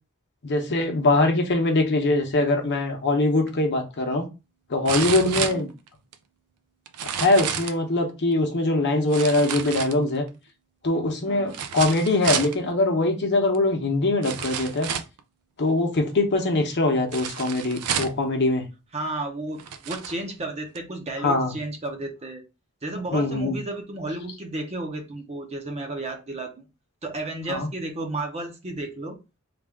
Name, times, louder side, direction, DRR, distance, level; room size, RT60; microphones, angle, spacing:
voice 1, 0.4-4.3 4.7-5.7 7.0-10.2 10.8-14.9 15.6-18.6 21.2-21.5 23.1-23.6 27.5-27.7, left 2 dB, 50° left, 0.8 m, -22 dB
sound 1, 3.5-3.6 4.8-6.1 6.9-7.8 9.1-10.3 11.5-12.6 13.5-13.6 14.2-15.2 17.1-18.3 19.1-19.2 19.6-20.2 20.7-20.8, right 8 dB, 80° right, 0.4 m, -30 dB
voice 2, 11.3-11.6 18.9-22.4 22.8-26.6 27.0-29.2, right 2 dB, 30° right, 0.7 m, -33 dB
3.3 x 2.4 x 3.5 m
head